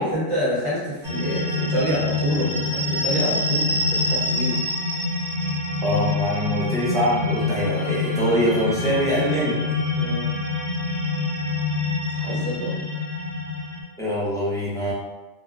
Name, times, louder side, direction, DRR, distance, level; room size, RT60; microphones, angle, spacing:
voice 1, 0.0-4.6 9.9-10.3 12.1-12.7, equal, 30° right, -8 dB, 0.8 m, -27 dB
sound 1, 1.0-13.8, left 3 dB, 65° right, 1.0 m, -25 dB
voice 2, 5.8-9.5 14.0-14.9, equal, 5° left, -8 dB, 0.4 m, -23 dB
2.6 x 2.1 x 2.4 m, 1.2 s
omnidirectional pair, 1.2 m